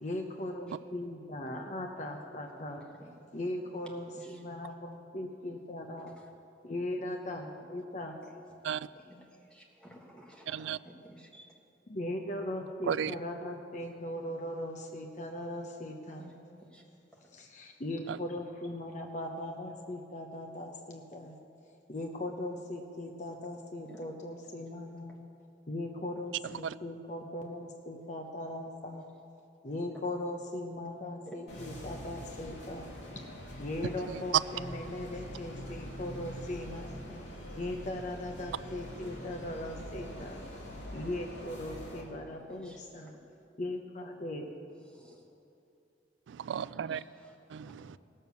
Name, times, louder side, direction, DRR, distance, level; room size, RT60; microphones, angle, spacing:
voice 1, 0.0-2.8 3.3-6.1 6.6-8.2 11.9-16.3 17.3-21.4 21.9-25.2 25.7-29.1 29.6-32.9 33.6-37.0 37.5-40.4 40.9-43.2 43.6-44.5, left 1 dB, 40° left, 2 dB, 0.7 m, -39 dB
voice 2, 9.0-11.6 16.2-16.3 16.6-16.8 17.1-17.2 23.8-24.0 31.2-31.6 42.6-43.1 44.9-45.3 46.7-47.3 47.7-47.8, equal, 5° left, -2 dB, 1.5 m, -54 dB
voice 3, 10.5-10.8 12.9-13.1 46.3-47.0 47.5-48.0, right 8 dB, 90° right, 18 dB, 0.3 m, -34 dB
sound 1, 31.5-42.0, equal, 90° left, 2.5 m, -44 dB
16.5 x 6.5 x 6.9 m, 2.6 s
head